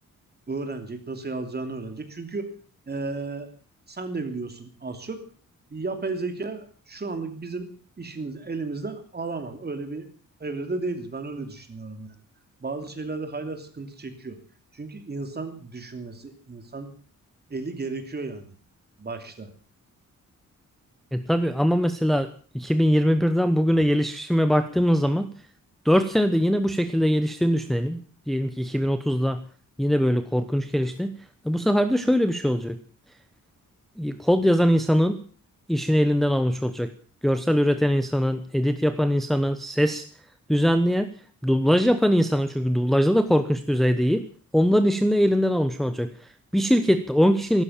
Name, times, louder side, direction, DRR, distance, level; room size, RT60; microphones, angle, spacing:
voice 1, 0.5-2.5 2.9-3.5 3.9-5.2 5.7-7.7 8.0-10.1 10.4-12.1 12.6-14.4 14.7-16.9 17.5-18.5 19.0-19.5, right 3 dB, 30° right, 7 dB, 2.9 m, -33 dB
voice 2, 21.1-25.3 25.8-28.0 28.3-29.4 29.8-31.1 31.4-32.8 34.0-35.2 35.7-36.9 37.2-40.1 40.5-41.1 41.4-44.3 44.5-47.6, equal, ahead, 9 dB, 0.9 m, -22 dB
15.0 x 12.5 x 7.3 m, 0.43 s
wide cardioid pair, 135°, 32 cm